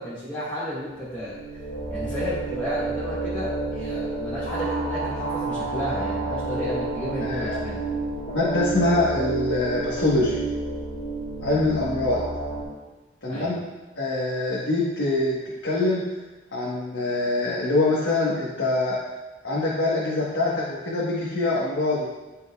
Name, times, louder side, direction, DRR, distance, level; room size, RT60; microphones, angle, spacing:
voice 1, 0.0-1.4 1.9-7.8 13.3-13.5, equal, 10° left, -13 dB, 1.9 m, -32 dB
sound 1, 1.0-12.6, right 2 dB, 45° left, 1.8 m, -30 dB
voice 2, 7.2-7.6 8.3-10.4 11.4-12.2 13.2-13.7 14.0-15.4 15.6-16.0 16.5-19.0 19.4-22.1, left 2 dB, 85° left, -7 dB, 1.4 m, -24 dB
12.5 x 5.3 x 2.4 m, 1.1 s
head